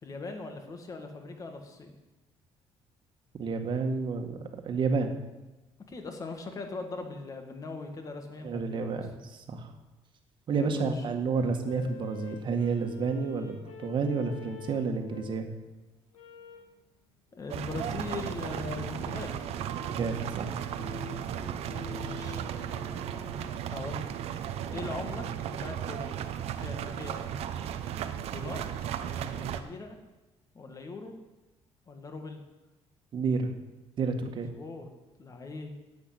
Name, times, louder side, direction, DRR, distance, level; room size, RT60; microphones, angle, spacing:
voice 1, 0.0-1.9 5.9-9.1 10.5-11.0 17.3-19.4 21.9-22.4 23.7-24.1 24.7-26.2 26.6-27.3 28.3-28.6 29.3-30.0 30.6-31.1 31.9-32.4 34.3-34.9 35.2-35.7, left 3 dB, 30° left, 5 dB, 2.0 m, -40 dB
voice 2, 3.4-5.1 8.4-9.7 10.5-15.5 19.9-20.6 33.1-33.5 34.0-34.5, right 4 dB, 45° right, 5 dB, 1.7 m, -30 dB
sound 1, 11.3-15.5 16.1-16.7 18.3-19.0 19.6-23.5, left 6 dB, 60° left, 1.8 m, -47 dB
sound 2, 17.5-29.6, right 9 dB, 70° right, 1.0 m, -35 dB
10.5 x 8.5 x 9.0 m, 1.1 s
cardioid pair, 125°, 11 cm